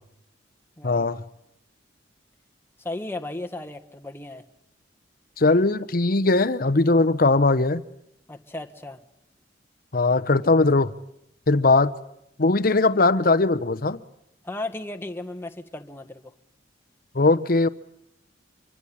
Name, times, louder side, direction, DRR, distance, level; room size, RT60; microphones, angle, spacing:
voice 1, 0.8-1.2 5.4-7.8 9.9-10.9 11.5-11.9 12.4-14.0 17.1-17.7, left 3 dB, 50° left, 0.9 m, -20 dB
voice 2, 2.8-4.4 8.3-9.0 14.4-16.3, left 2 dB, 15° left, 1.5 m, -35 dB
26.0 x 24.5 x 8.7 m
head